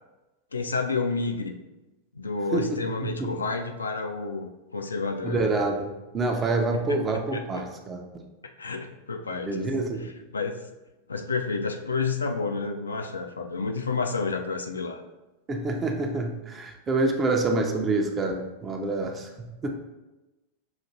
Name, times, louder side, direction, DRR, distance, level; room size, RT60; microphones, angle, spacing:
voice 1, 0.5-1.6 2.2-5.4 6.9-7.6 8.6-9.6 10.3-10.7 11.1-15.0, left 4 dB, 75° left, 5 dB, 0.3 m, -30 dB
voice 2, 2.5-3.3 5.2-8.0 9.5-10.1 15.5-19.7, right 2 dB, 20° right, 3 dB, 0.5 m, -27 dB
5.8 x 2.5 x 2.7 m, 1.1 s
figure-of-eight pair, 90°, 0 cm